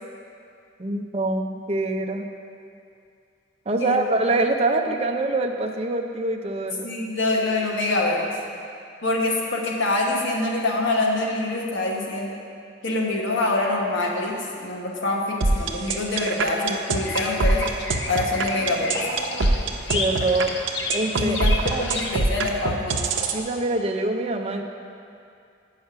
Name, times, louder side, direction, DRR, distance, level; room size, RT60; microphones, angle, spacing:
voice 1, 0.8-2.3 3.7-6.9 19.9-20.5 20.9-21.4 21.7-21.9 23.3-24.6, right 2 dB, 35° right, 3 dB, 0.5 m, -24 dB
voice 2, 6.8-8.3 9.0-12.4 12.8-17.6 18.1-19.0 21.2-23.0, left 2 dB, 85° left, -1 dB, 1.2 m, -25 dB
sound 1, 15.4-23.4, right 3 dB, 90° right, 0.6 m, -23 dB
Bird vocalization bird call bird song, 17.0-22.1, left 3 dB, 65° left, 0.7 m, -32 dB
8.2 x 5.6 x 5.6 m, 2.5 s
head